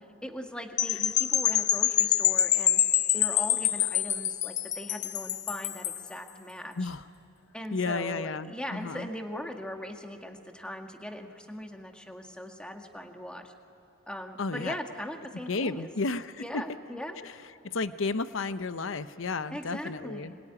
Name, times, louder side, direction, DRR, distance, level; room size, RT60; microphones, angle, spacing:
voice 1, 0.2-2.8 3.1-6.9 7.5-13.5 14.1-15.9 16.4-17.2 19.5-20.4, equal, 5° left, 4 dB, 1.8 m, -40 dB
sound 1, 0.8-6.1, left 11 dB, 35° left, 0.7 m, -26 dB
voice 2, 7.7-9.1 14.4-14.8 15.5-16.6 17.2-17.3 17.6-20.3, left 3 dB, 70° left, 13 dB, 0.8 m, -32 dB
26.0 x 22.0 x 9.9 m, 2.9 s
head